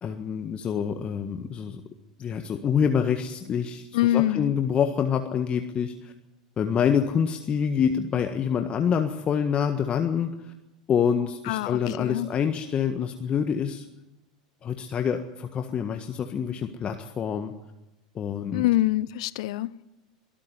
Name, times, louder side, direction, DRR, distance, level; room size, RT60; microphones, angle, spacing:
voice 1, 0.0-1.8 2.2-6.1 6.6-10.5 10.9-13.8 14.6-17.5 18.1-18.6, left 7 dB, 30° left, 1.6 m, -26 dB
voice 2, 3.9-4.5 11.4-12.3 18.5-19.8, left 15 dB, 60° left, 0.7 m, -25 dB
23.5 x 13.0 x 9.8 m
figure-of-eight pair, 85°, 4 cm